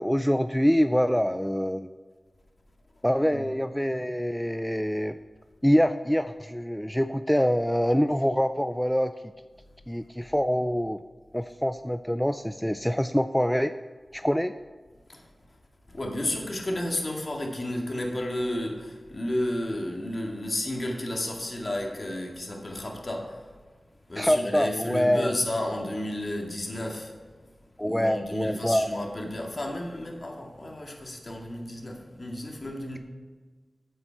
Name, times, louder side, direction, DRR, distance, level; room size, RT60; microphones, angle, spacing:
voice 1, 0.0-1.9 3.0-5.1 5.6-9.1 9.9-11.0 11.3-13.7 14.1-14.5 24.2-25.3 27.8-28.9, equal, 5° left, 0.4 m, -25 dB
voice 2, 15.9-23.5 24.1-27.2 27.8-33.0, left 1 dB, 45° left, 2.0 m, -32 dB
8.8 x 7.7 x 4.6 m
cardioid pair, 50°, 0 cm